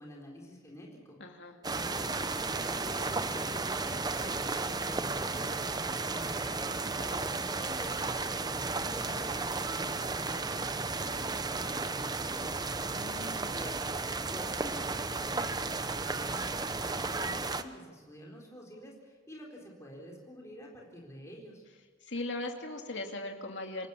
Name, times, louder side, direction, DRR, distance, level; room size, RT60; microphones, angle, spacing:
voice 1, 0.0-2.3 2.5-6.9 7.4-12.6 13.3-13.9 14.3-21.6, equal, 15° left, -2 dB, 4.1 m, -48 dB
voice 2, 1.2-1.6 7.0-7.3 12.6-13.6 22.0-23.9, left 2 dB, 65° left, 3 dB, 2.5 m, -39 dB
sound 1, 1.6-17.6, right 3 dB, 20° right, 0.7 m, -34 dB
27.5 x 18.5 x 7.2 m, 1.4 s
head